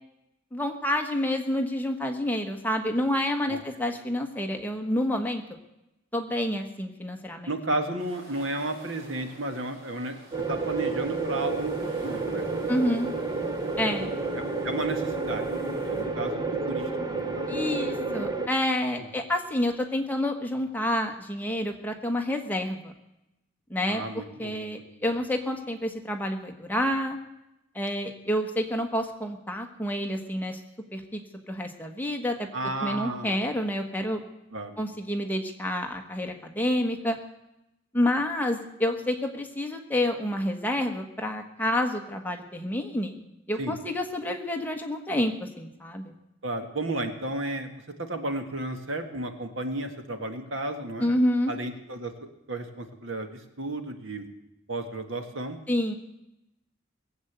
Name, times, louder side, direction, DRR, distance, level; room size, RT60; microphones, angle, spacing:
voice 1, 0.5-5.4 6.1-7.5 12.7-13.1 13.8-14.1 17.5-22.9 23.7-27.2 27.7-30.6 30.9-31.2 31.5-32.5 32.8-34.2 34.8-37.2 37.9-43.2 43.5-46.1 51.0-51.5 55.7-55.9, left 1 dB, 10° left, 3 dB, 1.3 m, -28 dB
voice 2, 7.5-10.2 10.5-12.6 13.8-15.4 15.8-16.4 16.7-17.5 23.9-25.1 32.5-33.4 34.5-34.8 43.6-43.8 46.4-47.7 48.0-51.1 51.5-52.1 52.5-54.2 54.7-55.6, right 2 dB, 70° right, 6 dB, 1.7 m, -33 dB
sound 1, 8.0-16.0, right 1 dB, 50° right, 5.6 m, -50 dB
sound 2, 10.3-18.5, right 3 dB, 20° right, 1.1 m, -30 dB
19.5 x 8.0 x 8.1 m, 0.89 s
head